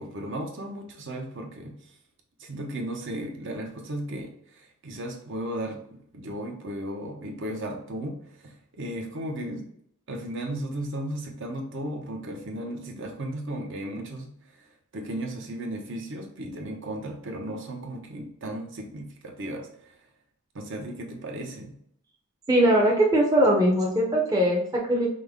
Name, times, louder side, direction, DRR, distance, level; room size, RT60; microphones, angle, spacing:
voice 1, 0.0-1.7 2.4-9.7 10.1-14.3 14.6-14.7 14.9-19.9 20.5-21.7, right 1 dB, 55° right, 1 dB, 0.8 m, -35 dB
voice 2, 22.5-25.1, right 1 dB, 15° right, -2 dB, 0.6 m, -21 dB
5.1 x 2.1 x 3.5 m, 0.69 s
head